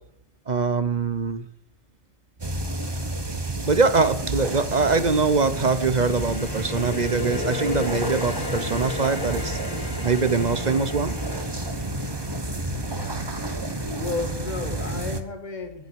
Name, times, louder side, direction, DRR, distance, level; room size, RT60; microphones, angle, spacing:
voice 1, 0.5-1.5 3.6-9.6 10.0-11.1, right 4 dB, 40° right, 13 dB, 0.8 m, -23 dB
sound 1, 2.4-15.2, right 2 dB, 20° right, 1.2 m, -30 dB
sound 2, 4.9-12.5, left 3 dB, 50° left, 2.5 m, -41 dB
sound 3, 6.0-14.0, left 4 dB, 80° left, 1.7 m, -36 dB
voice 2, 12.8-13.3 13.9-15.9, left 3 dB, 35° left, 5 dB, 2.1 m, -33 dB
11.0 x 9.2 x 9.7 m, 0.72 s
omnidirectional pair, 1.4 m